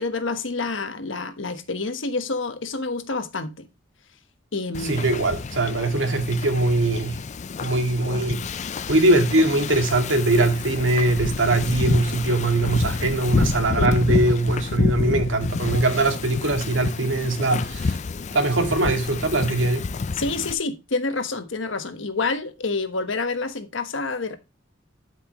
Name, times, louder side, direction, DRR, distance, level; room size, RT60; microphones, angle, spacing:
voice 1, 0.0-3.7 4.5-5.1 13.8-14.0 20.1-24.4, left 3 dB, 75° left, 1.2 m, -28 dB
Wind / Ocean, 4.7-20.5, left 4 dB, 40° left, 0.4 m, -28 dB
voice 2, 4.8-7.2 7.6-8.5 8.9-18.0 18.3-19.9, right 2 dB, 80° right, 2.1 m, -21 dB
12.0 x 5.8 x 3.0 m
head